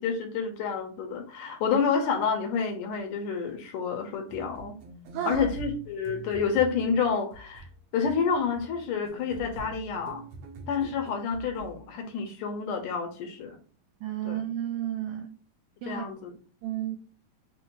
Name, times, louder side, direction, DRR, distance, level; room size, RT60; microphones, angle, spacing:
voice 1, 0.0-4.7 5.3-7.7 7.9-10.2 10.7-13.6 14.3-14.4 15.9-16.3, left 6 dB, 75° left, 2.2 m, -29 dB
sound 1, 4.3-11.9, equal, 70° right, 1.5 m, -44 dB
voice 2, 5.1-5.5 14.0-15.4 15.8-16.1 16.6-17.0, right 11 dB, 85° right, 1.7 m, -32 dB
6.0 x 2.7 x 2.9 m
omnidirectional pair, 4.1 m